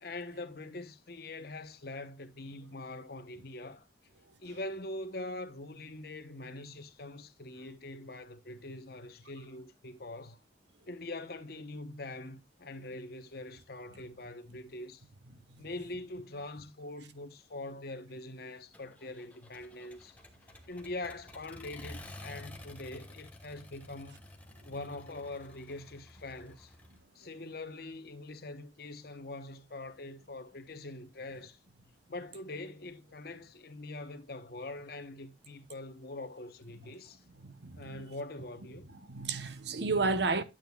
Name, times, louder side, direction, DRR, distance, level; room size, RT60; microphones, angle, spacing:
voice 1, 0.0-3.9 4.4-10.4 10.9-15.0 15.6-20.2 20.7-24.2 24.7-26.7 27.1-31.6 32.1-37.2 37.8-38.9, left 2 dB, 55° left, 0.9 m, -43 dB
Accelerating revving vroom, 18.7-27.0, left 1 dB, 10° left, 1.2 m, -51 dB
voice 2, 37.4-38.1 38.9-40.4, right 3 dB, 65° right, 0.9 m, -32 dB
11.0 x 8.8 x 2.3 m
head